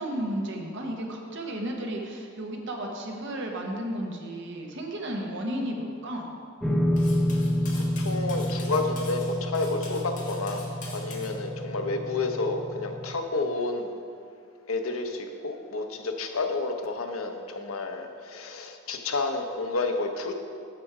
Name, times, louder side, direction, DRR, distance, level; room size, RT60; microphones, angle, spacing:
voice 1, 0.0-6.3, right 1 dB, 60° right, 1 dB, 1.1 m, -33 dB
sound 1, 6.6-13.2, equal, ahead, 0.7 m, -29 dB
Cutlery silverware, 7.0-11.3, left 3 dB, 40° left, 1.4 m, -44 dB
voice 2, 7.7-10.6 10.9-13.9 14.7-20.3, left 3 dB, 80° left, 4 dB, 0.8 m, -30 dB
8.4 x 6.4 x 4.8 m, 2.3 s
head